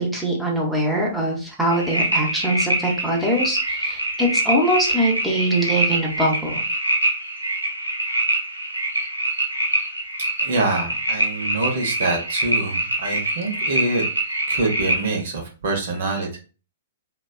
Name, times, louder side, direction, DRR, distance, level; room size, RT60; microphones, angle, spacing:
voice 1, 0.0-6.6, right 1 dB, ahead, -3 dB, 0.9 m, -22 dB
sound 1, 1.7-15.1, right 1 dB, 90° right, 0.7 m, -25 dB
voice 2, 10.4-14.0 14.5-16.4, right 2 dB, 55° right, 1 dB, 0.9 m, -25 dB
3.2 x 2.2 x 2.3 m, 0.35 s
figure-of-eight pair, 115°, 0 cm